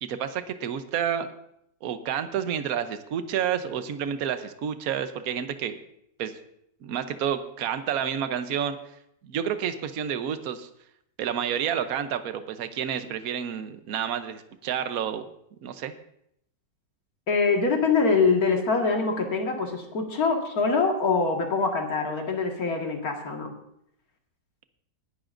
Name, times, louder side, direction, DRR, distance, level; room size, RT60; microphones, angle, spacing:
voice 1, 0.0-1.3 1.8-5.8 6.2-6.3 6.8-8.8 9.2-10.7 11.2-15.3 15.6-15.9, right 8 dB, 60° right, 9 dB, 1.2 m, -29 dB
voice 2, 17.3-23.5, left 4 dB, 55° left, 2 dB, 2.3 m, -24 dB
20.0 x 11.0 x 2.6 m, 0.75 s
omnidirectional pair, 1.9 m